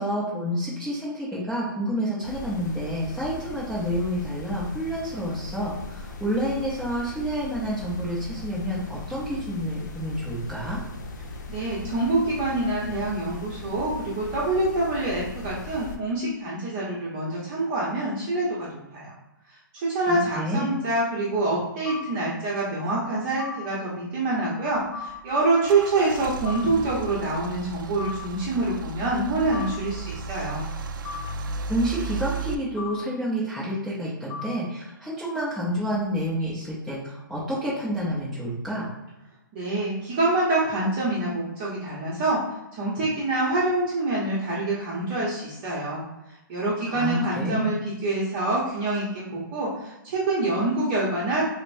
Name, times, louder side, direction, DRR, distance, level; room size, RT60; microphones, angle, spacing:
voice 1, 0.0-10.8 20.1-20.7 31.7-38.9 46.9-47.7, equal, ahead, -11 dB, 0.6 m, -29 dB
sound 1, 2.2-16.0, left 2 dB, 55° left, 0.6 m, -39 dB
voice 2, 11.5-19.1 19.5-30.7 39.5-42.4 42.7-46.0 46.3-51.4, right 2 dB, 30° right, -6 dB, 0.9 m, -26 dB
sound 2, 21.8-22.0 23.4-23.5 24.9-25.1 26.4-26.6 28.0-28.1 29.5-29.7 31.0-31.2 32.8-32.9 34.3-34.4, left 6 dB, 20° left, 1.1 m, -34 dB
Car / Engine starting / Idling, 24.7-32.5, right 5 dB, 70° right, 0.4 m, -35 dB
5.1 x 2.1 x 2.6 m, 0.94 s
hypercardioid pair, 150°, 11 cm